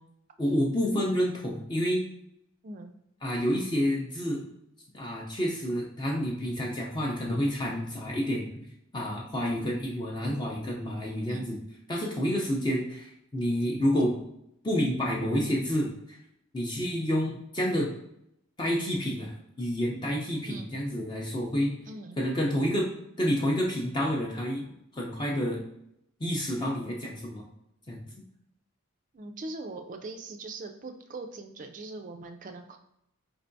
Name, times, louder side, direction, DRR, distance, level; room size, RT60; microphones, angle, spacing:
voice 1, 0.4-2.0 3.2-4.4 4.9-8.7 8.9-11.6 11.9-14.2 14.6-15.9 16.5-17.9 18.6-21.7 22.2-22.9 23.2-24.6 24.9-25.6 26.2-27.4 27.9-28.1, equal, 20° left, -2 dB, 0.5 m, -29 dB
voice 2, 2.6-3.0 11.3-11.6 20.5-20.7 21.8-22.2 29.1-32.8, right 2 dB, 35° right, 5 dB, 0.3 m, -41 dB
4.5 x 3.3 x 2.6 m, 0.77 s
head